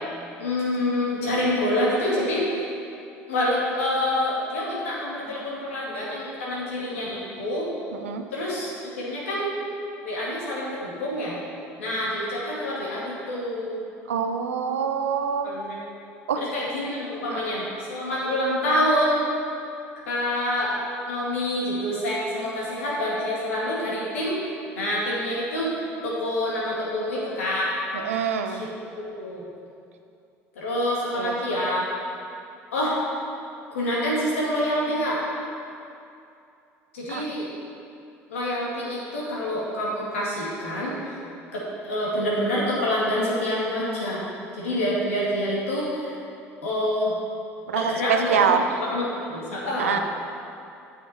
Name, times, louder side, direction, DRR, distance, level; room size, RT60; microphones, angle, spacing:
voice 1, 0.4-2.7 3.3-7.7 8.3-9.5 10.0-11.4 11.8-13.8 15.4-15.8 16.4-19.3 20.1-20.8 21.1-24.4 24.8-27.8 28.5-28.7 29.0-29.4 30.6-31.8 32.7-33.0 33.7-35.2 36.9-37.5 38.3-41.2 41.5-44.3 44.5-46.1 46.6-47.2 47.7-48.4 48.9-50.0, left 1 dB, 85° left, -6 dB, 2.1 m, -27 dB
voice 2, 7.9-8.2 14.1-15.5 16.3-16.4 17.3-17.4 27.9-28.6 31.2-31.4 37.1-37.2 47.7-48.6 49.8-50.0, right 7 dB, 90° right, 6 dB, 0.6 m, -25 dB
9.1 x 6.6 x 4.3 m, 2.6 s
hypercardioid pair, 70°, 7 cm